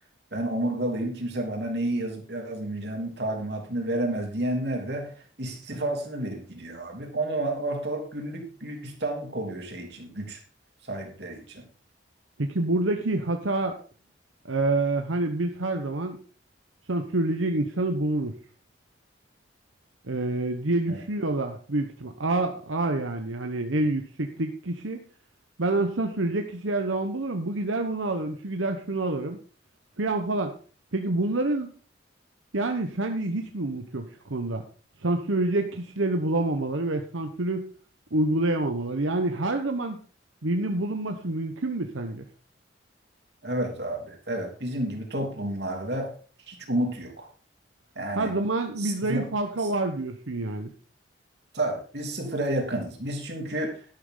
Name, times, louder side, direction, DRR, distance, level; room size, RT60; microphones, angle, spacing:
voice 1, 0.3-10.4 10.8-11.6 20.9-21.0 43.4-46.1 46.5-47.3 48.0-48.3 48.8-49.3 49.6-49.7 51.5-53.9, right 1 dB, 60° right, 2 dB, 3.4 m, -30 dB
voice 2, 12.4-13.8 14.4-16.2 16.9-18.3 20.1-25.0 25.6-29.4 30.0-30.5 30.9-31.7 32.5-34.6 35.0-37.7 38.1-40.0 40.4-42.2 48.1-50.7, right 2 dB, 90° right, 5 dB, 1.2 m, -27 dB
11.5 x 11.5 x 3.9 m, 0.40 s
head